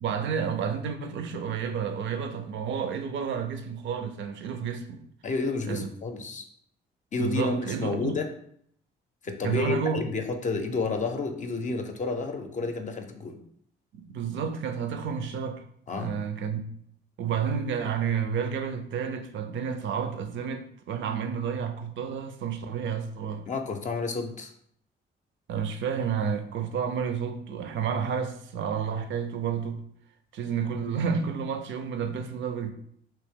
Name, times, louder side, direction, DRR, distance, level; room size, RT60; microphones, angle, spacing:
voice 1, 0.0-5.0 5.7-5.9 7.2-8.1 9.4-10.1 13.9-15.6 15.9-16.7 17.2-23.5 25.5-29.8 30.3-32.7, right 7 dB, 70° right, 0.5 m, -30 dB
voice 2, 5.2-6.4 7.1-8.3 9.2-13.4 15.9-16.1 23.4-24.5, left 3 dB, 40° left, 0.5 m, -30 dB
3.0 x 2.7 x 3.5 m
cardioid pair, 90°, 20 cm